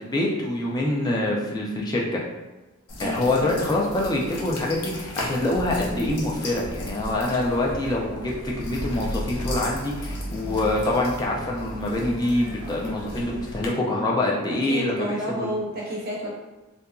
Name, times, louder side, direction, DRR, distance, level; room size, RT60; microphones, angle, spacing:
voice 1, 0.0-2.2 3.0-15.5, left 1 dB, 20° left, -3 dB, 0.3 m, -25 dB
sound 1, 2.9-13.7, left 1 dB, 85° left, 0.5 m, -35 dB
voice 2, 3.0-3.6 14.5-16.3, equal, 45° right, -3 dB, 0.6 m, -31 dB
2.7 x 2.5 x 2.3 m, 1.1 s
head